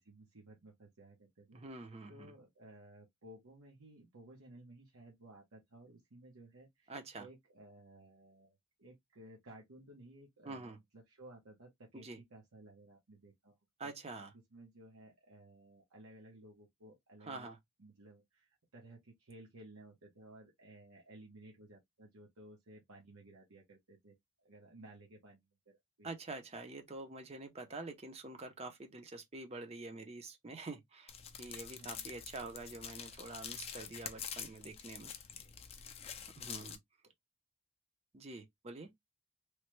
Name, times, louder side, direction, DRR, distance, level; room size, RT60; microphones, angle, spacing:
voice 1, 0.0-13.9 14.3-17.5 17.8-26.2 31.8-32.1 36.1-36.2, right 1 dB, 80° right, 0.9 m, -57 dB
voice 2, 1.5-2.3 6.9-7.3 10.4-10.8 11.9-12.2 13.8-14.3 17.3-17.6 26.0-31.1 31.4-35.1 36.4-36.8 38.1-38.9, right 2 dB, 30° right, 0.5 m, -46 dB
sound 1, 31.1-36.8, left 8 dB, 25° left, 0.4 m, -47 dB
3.1 x 2.1 x 3.0 m
head